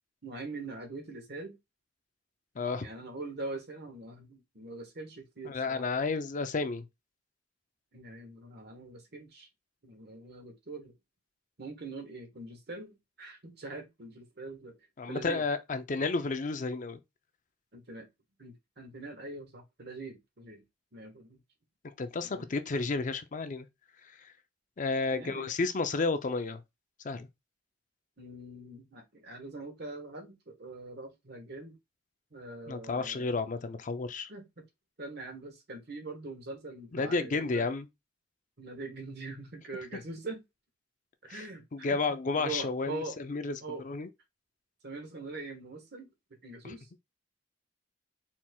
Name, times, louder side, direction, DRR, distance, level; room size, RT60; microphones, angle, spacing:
voice 1, 0.2-1.6 2.8-5.8 7.9-9.5 9.8-10.9 11.6-14.8 15.1-15.4 17.7-18.1 18.4-20.6 20.9-21.4 22.3-22.5 25.1-25.5 28.2-31.8 32.3-33.4 34.3-34.4 35.0-37.7 38.6-40.4 41.2-43.2 43.6-43.8 44.8-46.1 46.4-46.9, right 2 dB, 60° right, 1.4 m, -43 dB
voice 2, 2.6-2.9 5.5-6.8 15.0-17.0 22.0-23.7 24.0-24.3 24.8-26.6 27.0-27.3 32.7-34.3 36.9-37.9 41.3-41.4 41.7-44.1 46.6-46.7, left 3 dB, 45° left, 0.5 m, -32 dB
4.5 x 4.4 x 2.3 m
head